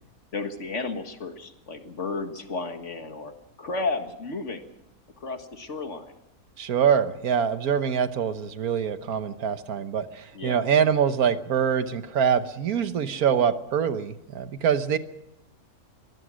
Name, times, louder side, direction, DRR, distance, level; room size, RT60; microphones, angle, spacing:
voice 1, 0.3-3.3 3.6-4.7 5.2-6.1 10.3-10.7, left 3 dB, 55° left, 6 dB, 2.1 m, -33 dB
voice 2, 6.6-15.0, right 7 dB, 80° right, 11 dB, 1.6 m, -24 dB
23.5 x 19.5 x 6.3 m, 0.87 s
omnidirectional pair, 1.5 m